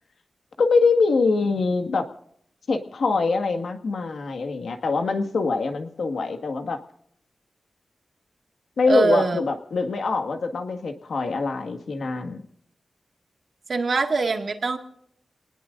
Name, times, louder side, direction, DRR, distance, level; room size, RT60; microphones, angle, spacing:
voice 1, 0.6-2.1 2.7-6.8 8.8-12.4, left 4 dB, 80° left, 6 dB, 1.8 m, -24 dB
voice 2, 8.9-9.4 13.7-14.8, right 3 dB, 55° right, 4 dB, 2.0 m, -22 dB
27.5 x 19.5 x 2.6 m, 0.70 s
wide cardioid pair, 125°, 0 cm